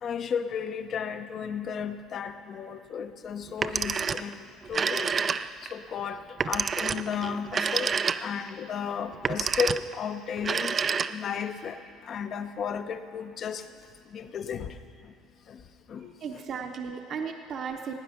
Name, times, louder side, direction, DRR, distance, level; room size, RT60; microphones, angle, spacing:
voice 1, 0.0-10.8 11.1-13.7 14.1-14.8 15.5-15.6 15.9-16.1, left 7 dB, 50° left, 9 dB, 0.8 m, -34 dB
Telephone, 3.5-4.3 4.6-5.7 6.4-8.5 9.1-9.9 10.4-11.4, right 6 dB, 35° right, 0.4 m, -28 dB
voice 2, 16.0-17.9, right 6 dB, 55° right, 4 dB, 1.0 m, -36 dB
17.5 x 9.4 x 5.8 m, 2.3 s
supercardioid pair, 85°, 0 cm